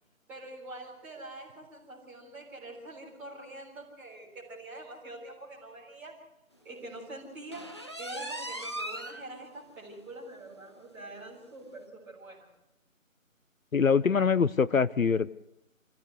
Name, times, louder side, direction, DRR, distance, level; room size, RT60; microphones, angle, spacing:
voice 1, 0.3-6.1 6.6-7.7 8.0-12.5, right 2 dB, 5° right, -8 dB, 3.9 m, -45 dB
sound 1, 7.5-9.2 9.7-9.8 10.2-10.3 10.7-10.8 11.7-11.8, right 1 dB, 20° left, 0.8 m, -38 dB
voice 2, 13.7-15.3, left 6 dB, 75° left, 18 dB, 0.8 m, -24 dB
27.5 x 15.5 x 8.2 m, 0.88 s
figure-of-eight pair, 160°, 41 cm